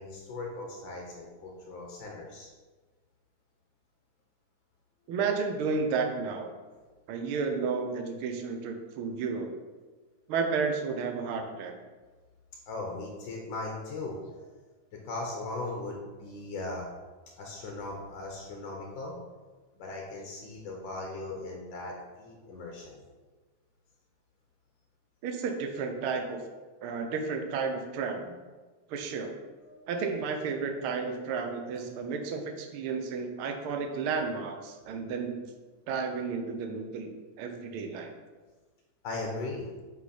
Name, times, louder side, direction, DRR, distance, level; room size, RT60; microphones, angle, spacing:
voice 1, 0.0-2.5 12.7-14.5 14.9-16.9 17.4-19.1 19.7-23.0 29.6-29.9 39.0-39.7, left 2 dB, 70° left, 0 dB, 1.1 m, -38 dB
voice 2, 5.1-6.5 7.1-9.5 10.3-11.8 25.2-26.4 26.8-28.4 28.9-29.3 29.9-35.4 35.9-37.1 37.4-38.1, right 5 dB, 70° right, 4 dB, 1.3 m, -32 dB
8.0 x 5.2 x 4.3 m, 1.3 s
omnidirectional pair, 3.4 m